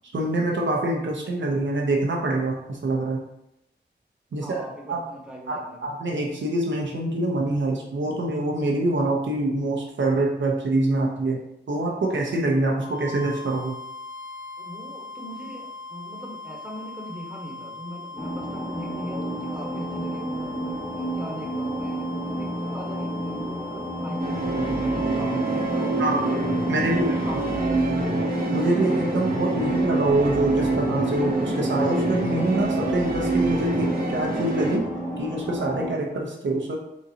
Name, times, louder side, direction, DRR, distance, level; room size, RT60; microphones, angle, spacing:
voice 1, 0.1-3.2 4.3-5.0 5.5-11.4 11.7-13.8 26.0-26.3 26.7-27.3 28.5-34.9 35.2-36.8, right 2 dB, 80° right, -1 dB, 0.8 m, -25 dB
voice 2, 4.4-6.0 14.6-26.3 26.8-28.2, equal, 5° right, -2 dB, 1.2 m, -40 dB
sound 1, 12.7-28.0, left 3 dB, 75° left, 0.7 m, -40 dB
sound 2, 18.2-35.9, equal, 15° left, 1.4 m, -30 dB
sound 3, 24.2-34.8, right 2 dB, 50° right, 0.9 m, -26 dB
4.1 x 3.7 x 2.8 m, 0.82 s
cardioid pair, 45°, 19 cm